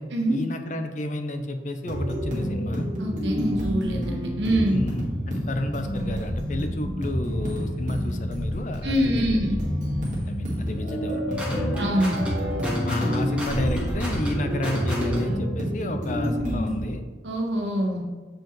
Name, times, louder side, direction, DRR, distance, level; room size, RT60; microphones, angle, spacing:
voice 1, 0.3-2.9 4.7-9.5 10.3-11.6 12.8-17.0, left 1 dB, 45° left, 6 dB, 0.6 m, -31 dB
sound 1, 1.8-16.8, equal, 45° right, 1.6 m, -29 dB
voice 2, 3.0-4.8 8.8-9.6 11.8-12.3 17.2-18.0, equal, 80° right, 1 dB, 1.1 m, -24 dB
sound 2, 11.4-15.4, equal, 5° right, 1.4 m, -29 dB
7.4 x 4.8 x 3.0 m, 1.3 s
head